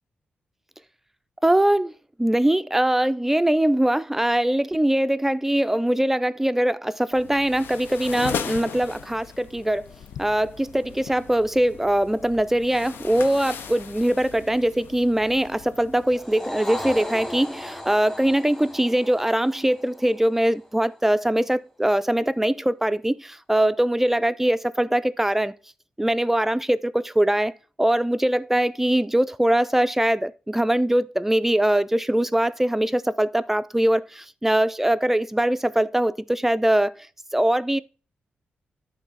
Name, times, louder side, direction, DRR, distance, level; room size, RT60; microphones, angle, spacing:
voice 1, 1.4-1.9 2.2-9.9 10.2-25.5 26.0-27.5 27.8-37.1 37.3-37.8, right 1 dB, 10° right, 0.3 m, -22 dB
sound 1, 7.1-16.0, left 7 dB, 90° left, 0.5 m, -38 dB
sound 2, 16.0-20.6, left 1 dB, 15° left, 1.2 m, -36 dB
9.8 x 3.8 x 4.0 m
cardioid pair, 85°, 4 cm